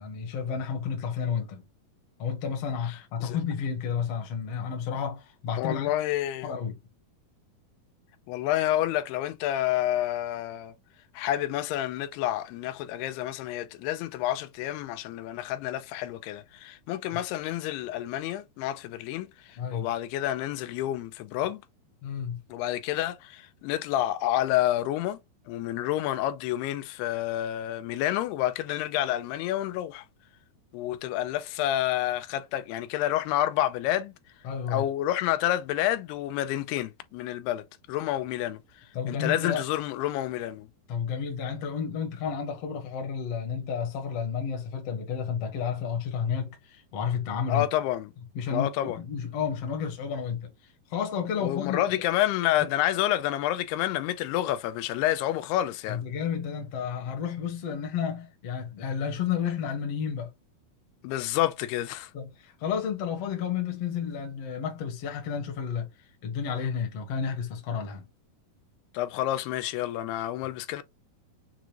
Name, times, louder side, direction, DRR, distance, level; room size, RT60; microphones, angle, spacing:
voice 1, 0.0-1.6 2.2-5.9 6.4-6.8 17.1-17.2 19.6-19.9 22.0-22.4 34.4-34.9 38.9-39.6 40.9-47.6 48.3-50.5 50.9-51.8 55.9-60.3 62.1-65.9 66.2-68.1, left 7 dB, 55° left, 1.8 m, -31 dB
voice 2, 5.6-6.5 8.3-10.7 11.2-19.3 19.7-21.6 22.5-25.2 25.5-30.0 30.7-34.1 34.7-38.6 39.1-40.7 47.5-48.1 48.5-49.0 51.4-56.0 61.0-62.1 68.9-70.8, left 13 dB, 85° left, 2.6 m, -29 dB
7.0 x 2.5 x 2.9 m
omnidirectional pair, 4.6 m